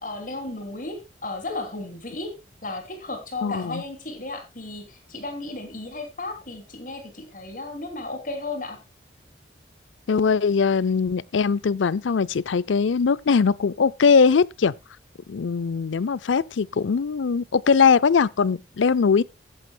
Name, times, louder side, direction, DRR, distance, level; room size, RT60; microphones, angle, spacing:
voice 1, 0.0-8.8, left 2 dB, 45° left, 2.9 m, -34 dB
voice 2, 3.4-3.8 10.1-14.7 15.3-19.2, left 5 dB, 90° left, 0.5 m, -21 dB
15.5 x 10.0 x 2.3 m
head